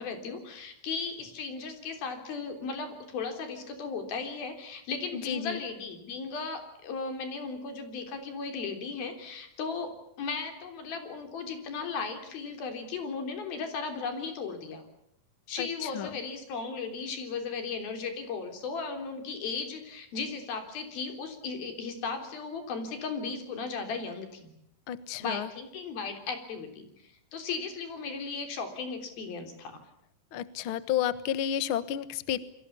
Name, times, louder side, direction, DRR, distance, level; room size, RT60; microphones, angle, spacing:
voice 1, 0.0-14.8 15.5-24.5 25.2-26.9 27.3-29.8, left 4 dB, 85° left, 6 dB, 5.3 m, -36 dB
voice 2, 5.3-5.6 15.6-16.1 24.9-25.5 30.3-32.4, left 10 dB, 65° left, 14 dB, 1.3 m, -31 dB
29.0 x 23.0 x 7.1 m, 0.77 s
omnidirectional pair, 4.1 m